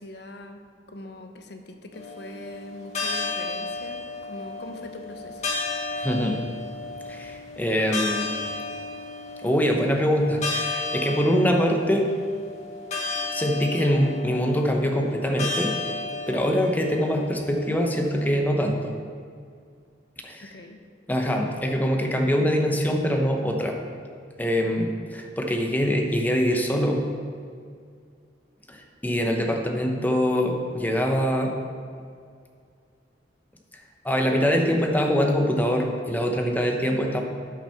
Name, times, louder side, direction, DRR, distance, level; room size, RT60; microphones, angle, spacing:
voice 1, 0.0-5.5 20.4-20.8, left 1 dB, 65° left, 5 dB, 0.8 m, -42 dB
sound 1, 1.9-18.3, left 3 dB, 40° left, 1.6 m, -33 dB
voice 2, 6.0-6.4 7.1-8.3 9.4-12.1 13.3-15.7 16.3-18.9 20.2-20.4 21.1-23.8 24.4-27.1 28.7-31.5 34.0-37.2, equal, 10° left, 2 dB, 0.8 m, -24 dB
8.9 x 5.7 x 5.8 m, 2.2 s
head